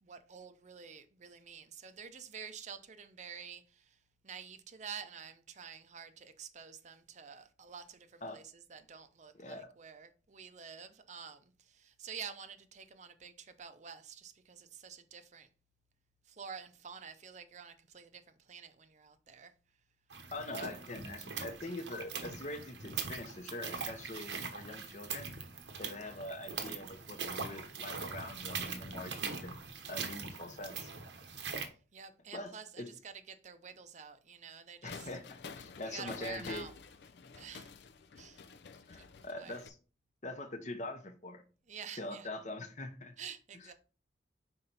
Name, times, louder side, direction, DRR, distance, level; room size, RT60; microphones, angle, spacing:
voice 1, 0.0-4.0 4.2-15.5 16.3-19.5 31.6-35.1 35.8-36.7 37.4-37.7 38.2-38.5 38.9-39.6 41.7-42.3 43.2-43.7, right 7 dB, 40° right, 0.6 m, -49 dB
voice 2, 9.4-9.7 20.3-25.3 25.8-29.6 29.9-30.9 32.3-32.5 32.8-32.9 34.8-36.7 38.9-39.8 40.2-41.4 42.0-43.2, left 2 dB, 40° left, 0.8 m, -43 dB
sound 1, 20.1-31.7, right 5 dB, 90° right, 1.1 m, -42 dB
sound 2, 34.9-39.7, left 5 dB, 70° left, 0.5 m, -50 dB
5.7 x 4.4 x 3.9 m
head